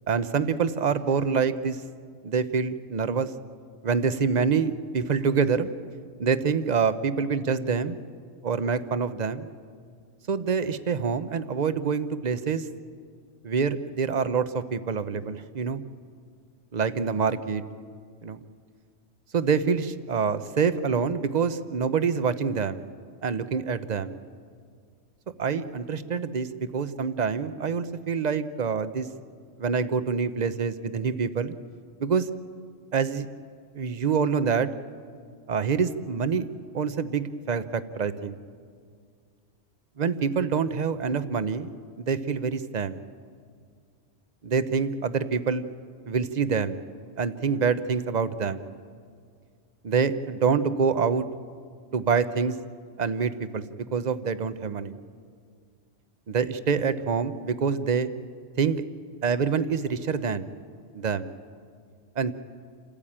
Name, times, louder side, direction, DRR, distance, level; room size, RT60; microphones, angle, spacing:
voice 1, 0.1-1.8 2.2-3.3 3.8-5.7 6.2-8.0 8.4-9.5 10.3-12.7 13.4-15.8 16.7-17.6 18.2-18.4 19.3-22.8 23.2-24.2 25.4-29.1 29.6-31.5 32.0-32.3 32.9-33.3 33.7-34.7 35.5-36.5 36.7-38.4 40.0-41.7 42.1-43.0 44.4-45.6 46.1-46.8 47.2-48.6 49.8-51.3 51.9-52.6 53.0-55.0 56.3-58.1 58.6-58.8 59.2-60.5 60.9-61.3 62.2-62.3, right 6 dB, 40° right, 12 dB, 0.7 m, -26 dB
28.5 x 13.5 x 8.7 m, 2.1 s
omnidirectional pair, 1.3 m